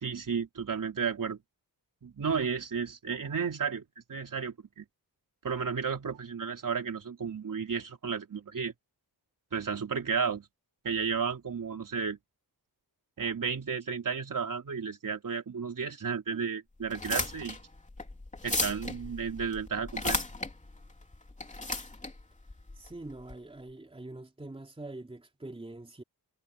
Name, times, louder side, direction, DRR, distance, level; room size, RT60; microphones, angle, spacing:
voice 1, 0.0-1.4 2.0-3.8 4.1-4.9 5.4-8.7 9.5-10.5 10.8-12.2 13.2-17.6 18.4-20.2, right 6 dB, 55° right, 3.7 m, -33 dB
sound 1, 16.8-23.3, left 2 dB, 20° left, 3.3 m, -35 dB
voice 2, 22.8-26.0, right 2 dB, 15° right, 2.9 m, -44 dB
wide cardioid pair, 150°, 39 cm